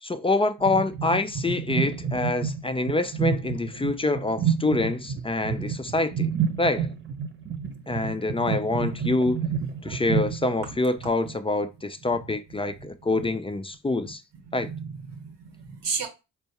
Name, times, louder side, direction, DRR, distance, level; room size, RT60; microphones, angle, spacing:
voice 1, 0.0-6.3 6.6-6.9 7.9-9.5 9.8-14.2 14.5-14.7, left 2 dB, 15° left, 0.3 m, -26 dB
sound 1, 0.6-10.8, right 7 dB, 25° right, 0.8 m, -29 dB
voice 2, 14.5-16.1, right 5 dB, 75° right, 1.1 m, -34 dB
4.4 x 2.2 x 2.8 m
supercardioid pair, 45°, 43 cm